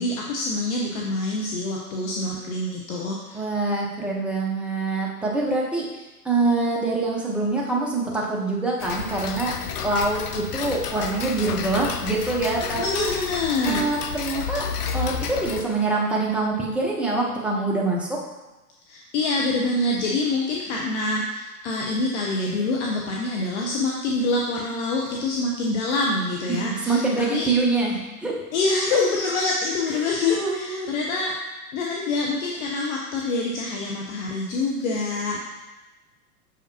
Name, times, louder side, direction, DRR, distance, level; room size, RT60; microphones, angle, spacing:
voice 1, 0.0-3.4 12.8-13.9 18.9-27.5 28.5-31.3 31.7-35.4, left 2 dB, 50° left, -1 dB, 0.9 m, -26 dB
voice 2, 3.3-5.9 6.2-9.5 9.8-13.1 13.6-14.7 14.9-18.2 26.5-28.3 28.9-29.0 29.9-30.9, right 3 dB, ahead, -4 dB, 0.9 m, -25 dB
Tick-tock, 8.8-15.6, left 7 dB, 75° left, 0.7 m, -31 dB
6.7 x 5.0 x 2.8 m, 1.1 s
hypercardioid pair, 110°, 46 cm